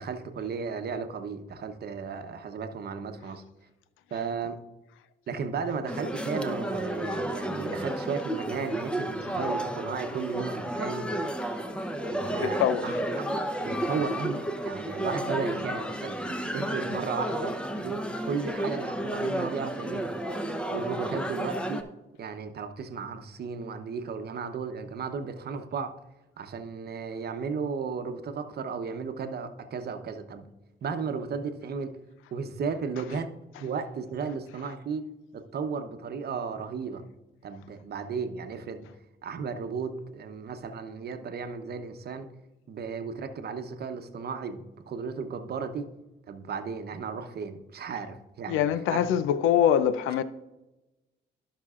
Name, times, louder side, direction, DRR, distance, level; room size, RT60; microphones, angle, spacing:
voice 1, 0.0-3.4 4.1-4.6 5.3-11.1 12.1-13.0 13.6-20.2 20.7-21.8 22.2-25.9 26.4-30.5 30.8-31.9 32.3-33.3 33.6-35.1 35.3-37.0 37.4-38.9 39.2-42.3 42.7-45.9 46.3-48.6 48.9-49.0, right 5 dB, 55° right, 0.9 m, -34 dB
sound 1, 5.9-21.8, right 1 dB, 5° left, 0.8 m, -32 dB
voice 2, 12.0-13.0 48.5-50.2, left 9 dB, 90° left, 0.5 m, -25 dB
15.5 x 5.9 x 2.4 m
cardioid pair, 90°, 20 cm